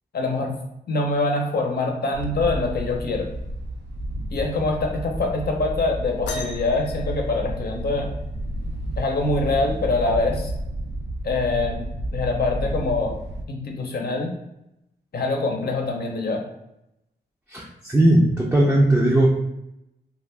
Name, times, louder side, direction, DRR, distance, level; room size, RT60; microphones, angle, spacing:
voice 1, 0.1-0.6 0.9-3.3 4.3-8.1 9.0-10.5 11.2-13.2 13.5-14.3 15.1-16.4, left 3 dB, 60° left, 1 dB, 0.7 m, -24 dB
Wind, 2.1-13.4, right 1 dB, 75° right, 0.4 m, -31 dB
sound 1, 6.3-8.2 9.8-9.9 10.7-10.9 11.9-12.0, left 3 dB, 85° left, 0.4 m, -36 dB
voice 2, 17.5-19.3, right 1 dB, 5° right, -4 dB, 0.5 m, -18 dB
2.4 x 2.3 x 3.3 m, 0.84 s
cardioid pair, 75°, 18 cm